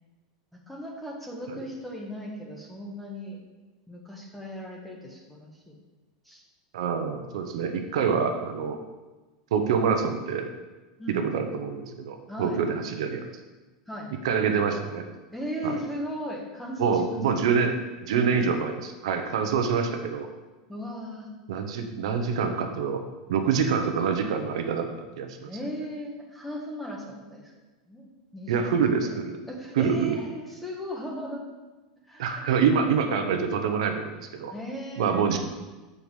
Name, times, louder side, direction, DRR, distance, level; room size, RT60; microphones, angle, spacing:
voice 1, 0.7-3.4 3.9-5.8 6.2-6.4 11.0-11.3 12.3-12.6 13.9-14.1 15.3-17.5 20.7-21.3 25.4-27.5 27.9-28.1 28.3-31.5 32.1-32.6 34.5-35.4, equal, 5° left, -1 dB, 1.3 m, -37 dB
voice 2, 6.7-8.8 9.5-10.5 11.1-13.2 14.2-15.0 15.6-15.8 16.8-17.7 18.0-20.3 21.5-23.0 23.3-25.5 28.5-29.4 29.8-30.2 32.2-34.5 35.0-35.4, right 6 dB, 80° right, 5 dB, 0.9 m, -26 dB
6.9 x 4.7 x 5.5 m, 1.2 s
supercardioid pair, 145°, 3 cm